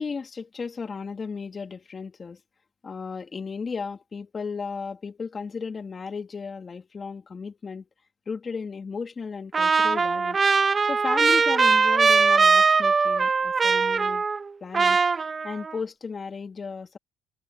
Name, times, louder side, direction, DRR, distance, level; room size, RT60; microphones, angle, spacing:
voice 1, 0.0-2.4 2.8-7.9 8.3-14.2 14.6-15.0 15.4-17.0, left 5 dB, 30° left, 2.5 m, -35 dB
Trumpet, 9.5-14.5 14.7-15.8, right 4 dB, 30° right, 1.2 m, -21 dB
cardioid pair, 95°, 0 cm